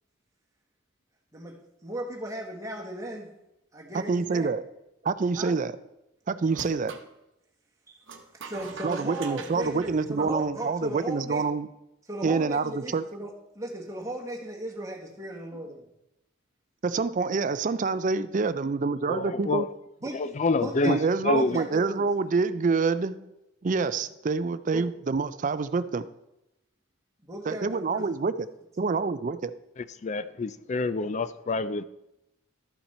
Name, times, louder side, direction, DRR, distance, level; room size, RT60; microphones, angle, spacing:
voice 1, 1.3-3.3 3.7-4.5 5.3-5.6 7.9-8.0 8.4-11.4 12.1-15.8 20.0-20.3 20.5-22.1 24.7-24.8 27.2-28.1, right 1 dB, 15° right, -1 dB, 1.4 m, -37 dB
voice 2, 3.9-4.6 5.0-5.7 6.3-7.0 8.8-11.7 12.2-13.0 16.8-19.7 20.9-23.3 23.6-26.1 27.5-28.5 28.8-29.5, right 4 dB, 40° right, 14 dB, 0.4 m, -27 dB
sound 1, 6.5-7.1 8.1-10.8, right 4 dB, 60° right, 0.9 m, -43 dB
voice 3, 19.1-19.7 20.1-21.6 29.8-31.8, left 3 dB, 35° left, 14 dB, 0.4 m, -27 dB
12.5 x 5.8 x 4.3 m, 0.88 s
head